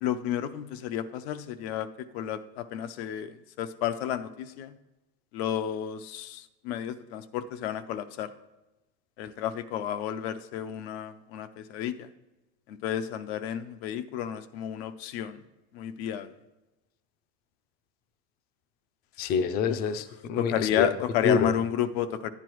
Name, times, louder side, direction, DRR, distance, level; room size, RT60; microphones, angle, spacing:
voice 1, 0.0-1.9 2.1-3.3 3.6-4.7 5.3-8.3 9.2-12.1 12.7-15.4 15.7-16.3 19.7-19.8 20.4-22.3, left 10 dB, 85° left, 11 dB, 0.6 m, -31 dB
voice 2, 19.2-20.9 21.2-21.5, left 6 dB, 30° left, 11 dB, 0.4 m, -26 dB
9.7 x 9.7 x 3.0 m, 1.1 s
cardioid pair, 155°, 31 cm